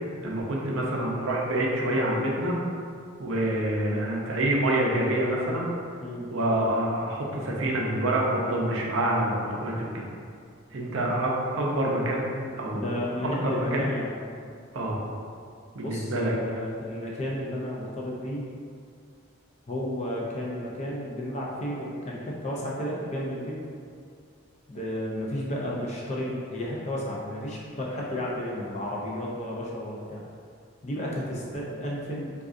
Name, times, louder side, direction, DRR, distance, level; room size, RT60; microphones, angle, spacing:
voice 1, 0.2-2.6 3.2-5.7 6.3-10.1 10.7-12.3 12.5-12.9 13.4-13.9 14.7-15.0 15.7-16.4, right 1 dB, 75° right, -2 dB, 0.5 m, -27 dB
voice 2, 12.7-14.1 15.8-18.4 19.7-23.6 24.7-30.2 30.8-32.5, left 1 dB, 30° left, -4 dB, 0.4 m, -32 dB
3.6 x 2.3 x 2.5 m, 2.3 s
head